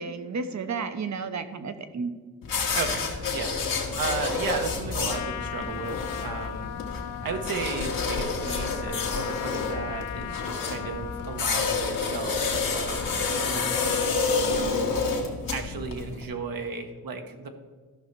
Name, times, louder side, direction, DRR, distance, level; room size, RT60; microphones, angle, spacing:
voice 1, 0.0-2.1, right 4 dB, 50° right, 9 dB, 1.0 m, -32 dB
sound 1, 2.4-16.3, left 4 dB, 65° left, 1.8 m, -29 dB
voice 2, 2.7-3.0 3.3-6.7 7.0-15.0 15.5-17.5, right 4 dB, 65° right, 4 dB, 1.2 m, -35 dB
Trumpet, 5.1-14.2, left 11 dB, 80° left, 0.6 m, -38 dB
13.5 x 5.6 x 4.6 m, 1.4 s
cardioid pair, 80°, 37 cm